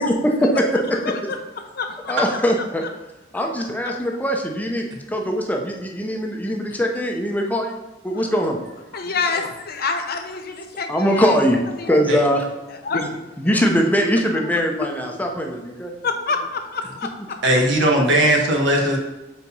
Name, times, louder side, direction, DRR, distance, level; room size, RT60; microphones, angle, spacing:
voice 1, 0.8-1.4 1.8-2.5 6.7-6.8 8.1-8.3 8.9-11.4 11.8-12.0 12.7-13.1 13.4-13.6 14.8-14.9 16.0-17.1, left 4 dB, 55° left, 6 dB, 0.7 m, -27 dB
voice 2, 2.1-2.8 3.3-7.8 8.0-8.6 10.9-11.6 11.9-12.5 13.4-15.9, equal, 10° left, 2 dB, 0.7 m, -21 dB
voice 3, 17.4-19.0, right 1 dB, 75° right, 0 dB, 1.2 m, -18 dB
4.7 x 4.1 x 5.4 m, 1.1 s
head